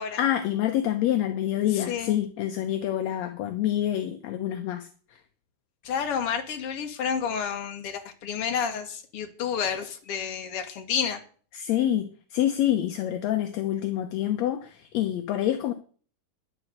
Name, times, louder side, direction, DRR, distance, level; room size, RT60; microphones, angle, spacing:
voice 1, 0.2-5.2 11.5-15.7, left 12 dB, 70° left, 1.8 m, -27 dB
voice 2, 1.7-2.2 5.8-11.2, left 7 dB, 50° left, 2.2 m, -30 dB
10.0 x 9.0 x 7.9 m
omnidirectional pair, 3.9 m